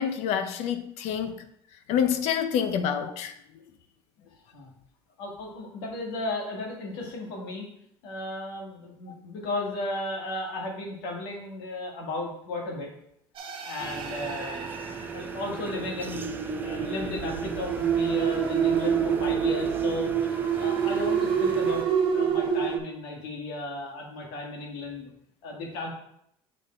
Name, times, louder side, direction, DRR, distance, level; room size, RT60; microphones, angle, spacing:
voice 1, 0.0-1.5 1.9-3.3, left 8 dB, 65° left, 9 dB, 0.7 m, -27 dB
voice 2, 4.3-4.7 5.2-7.7 8.0-12.9 13.6-21.9 22.1-25.1 25.4-25.9, left 2 dB, 90° left, -1 dB, 1.8 m, -35 dB
sound 1, 13.4-22.8, right 7 dB, 45° right, 1.2 m, -27 dB
sound 2, 13.8-21.8, right 6 dB, 15° right, 0.6 m, -38 dB
7.2 x 3.7 x 4.3 m, 0.73 s
supercardioid pair, 115°, 12 cm